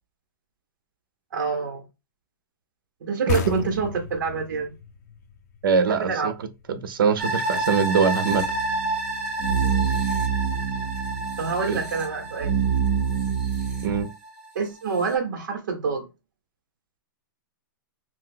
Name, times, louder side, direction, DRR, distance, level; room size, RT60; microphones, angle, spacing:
voice 1, 1.3-1.8 3.0-4.7 5.9-6.3 9.6-10.0 11.4-12.5 14.5-16.1, right 5 dB, 65° right, 1.0 m, -27 dB
sound 1, 3.3-6.7, left 3 dB, 50° left, 0.5 m, -32 dB
voice 2, 5.6-6.3 6.7-8.5 11.7-11.8 13.8-14.1, right 6 dB, 85° right, 0.6 m, -22 dB
sound 2, 7.2-14.5 14.9-15.0, right 1 dB, 5° right, 0.7 m, -30 dB
sound 3, 8.3-14.0, right 7 dB, 40° right, 0.6 m, -27 dB
2.7 x 2.3 x 3.7 m
hypercardioid pair, 165°, 11 cm